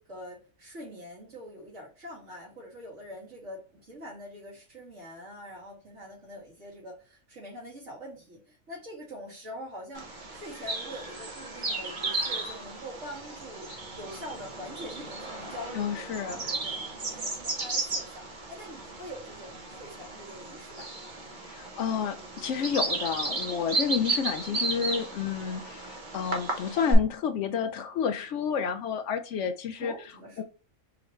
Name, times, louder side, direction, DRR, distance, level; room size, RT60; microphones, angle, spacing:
voice 1, 0.0-13.7 14.0-16.7 17.0-20.9 24.5-24.7 29.8-30.4, equal, 65° right, 2.6 m, -44 dB
Bird vocalization bird call bird song, 9.9-26.9, right 3 dB, 40° right, 1.1 m, -34 dB
voice 2, 15.7-16.4 21.5-29.9 30.4-30.5, left 7 dB, 70° left, 0.8 m, -30 dB
4.9 x 3.0 x 3.1 m
omnidirectional pair, 1.4 m